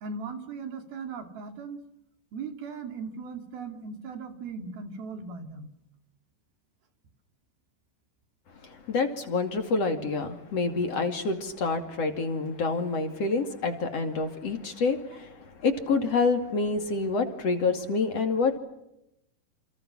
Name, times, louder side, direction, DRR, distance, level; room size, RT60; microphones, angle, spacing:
voice 1, 0.0-1.8 2.3-5.7, right 4 dB, 80° right, 6 dB, 4.7 m, -38 dB
voice 2, 8.6-15.3 15.6-18.6, left 4 dB, 45° left, 6 dB, 3.3 m, -27 dB
29.5 x 28.5 x 6.2 m, 0.85 s
omnidirectional pair, 4.2 m